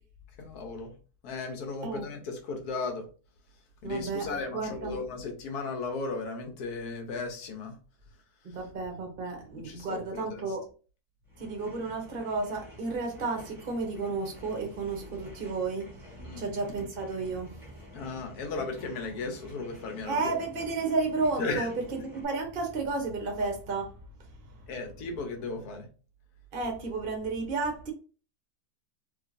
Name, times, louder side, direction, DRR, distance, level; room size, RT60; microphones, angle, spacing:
voice 1, 0.4-1.0 1.2-3.0 3.8-7.8 9.6-10.6 16.2-16.5 17.9-20.3 21.4-21.7 24.7-25.9, left 3 dB, 90° left, 1.3 m, -36 dB
voice 2, 3.8-5.0 8.4-10.6 11.4-15.9 16.4-17.5 20.1-21.7 22.1-23.9 26.5-27.9, right 3 dB, 45° right, 0.7 m, -32 dB
sound 1, 11.3-22.2, equal, ahead, 1.0 m, -49 dB
3.0 x 2.8 x 2.5 m
omnidirectional pair, 1.6 m